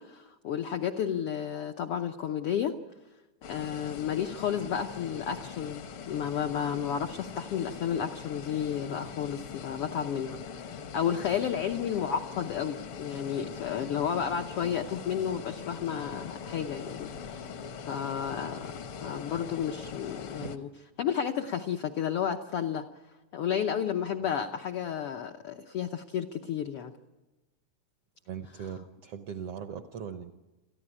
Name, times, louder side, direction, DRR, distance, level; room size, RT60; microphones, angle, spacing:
voice 1, 0.0-2.8 3.5-10.4 10.7-17.5 17.9-20.7 21.0-22.9 23.3-26.9, left 8 dB, 80° left, 5 dB, 1.3 m, -32 dB
sound 1, 3.4-20.6, left 6 dB, 65° left, 1.4 m, -42 dB
voice 2, 28.3-30.3, right 7 dB, 75° right, 8 dB, 1.4 m, -40 dB
28.0 x 14.5 x 9.9 m, 1.1 s
omnidirectional pair, 3.8 m